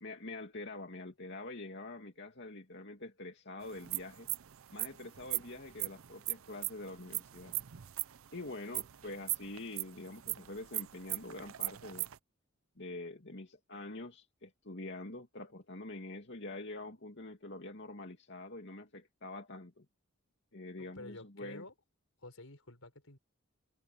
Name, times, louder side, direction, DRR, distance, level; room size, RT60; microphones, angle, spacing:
voice 1, 0.0-4.3 4.7-7.6 8.3-12.1 12.8-19.9 20.5-21.7, left 2 dB, 55° left, 2.5 m, -45 dB
sound 1, 3.7-12.2, right 18 dB, 70° right, 0.5 m, -39 dB
voice 2, 20.8-21.7 22.2-23.2, left 2 dB, 80° left, 4.4 m, -50 dB
head